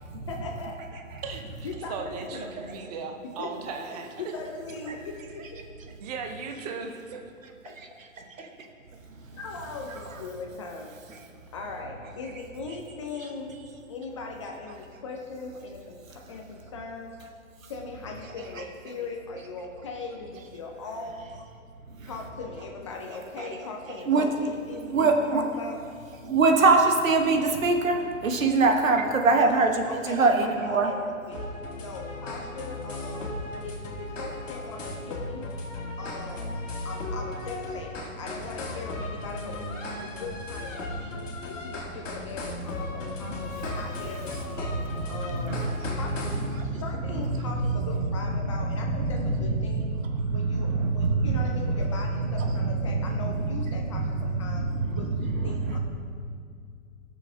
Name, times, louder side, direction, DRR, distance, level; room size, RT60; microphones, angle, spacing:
voice 1, 0.3-0.9 1.6-2.5 3.4-3.5 4.2-5.6 7.7-7.8 9.2-10.9 11.5-13.6 13.9-17.1 17.7-21.3 22.0-25.1 25.3-25.8 29.3-30.3 30.7-31.0 31.2-33.3 33.6-35.5 36.0-36.6 36.8-41.2 41.5-44.7 45.1-46.4 46.8-50.0 50.3-54.7 54.9-55.8, left 3 dB, 25° left, 1 dB, 0.5 m, -39 dB
voice 2, 1.9-4.1 6.0-7.2, right 5 dB, 30° right, 4 dB, 0.6 m, -36 dB
voice 3, 24.8-25.5 26.2-30.9 43.3-43.4 44.3-44.4 44.9-45.1 45.3-46.0 46.3-47.7 48.4-51.8 52.4-55.8, right 3 dB, 70° right, 3 dB, 1.3 m, -25 dB
sound 1, 31.3-46.5, left 2 dB, 65° left, 1.9 m, -36 dB
16.0 x 6.4 x 2.7 m, 2.2 s
hypercardioid pair, 135°, 41 cm